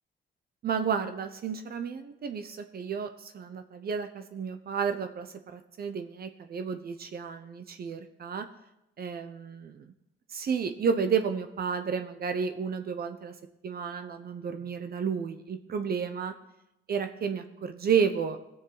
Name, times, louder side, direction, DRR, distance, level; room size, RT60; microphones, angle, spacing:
voice 1, 0.6-8.5 9.0-9.9 10.3-13.4 13.6-16.3 16.9-18.5, right 6 dB, 50° right, 8 dB, 0.9 m, -31 dB
17.0 x 7.2 x 4.1 m, 0.87 s
cardioid pair, 90°, 20 cm